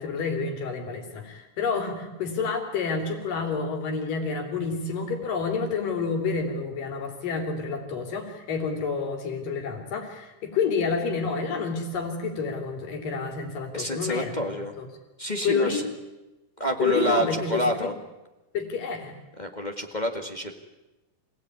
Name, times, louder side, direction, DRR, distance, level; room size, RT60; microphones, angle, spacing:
voice 1, 0.0-14.9 15.4-15.8 16.8-17.9 18.5-19.1, left 5 dB, 75° left, 4 dB, 4.9 m, -29 dB
voice 2, 13.7-14.7 15.2-15.8 16.6-17.9 19.4-20.5, equal, 25° left, 4 dB, 1.0 m, -28 dB
27.0 x 17.0 x 9.6 m, 1.1 s
omnidirectional pair, 3.9 m